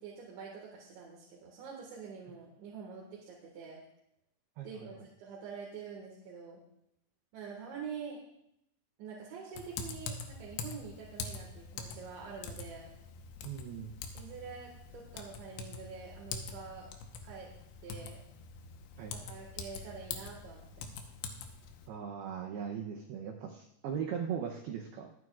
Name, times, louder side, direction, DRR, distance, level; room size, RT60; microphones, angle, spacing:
voice 1, 0.0-3.8 4.6-6.6 7.3-8.2 9.0-12.9 14.1-16.9 17.2-17.5 17.8-18.2 19.0-20.9, right 6 dB, 70° right, -3 dB, 3.9 m, -46 dB
voice 2, 4.6-4.9 13.4-14.0 19.0-19.1 21.9-25.1, right 7 dB, 85° right, 3 dB, 2.2 m, -39 dB
Typing, 9.5-21.9, left 5 dB, 75° left, 3.2 m, -44 dB
23.0 x 9.4 x 2.5 m, 0.77 s
omnidirectional pair, 5.7 m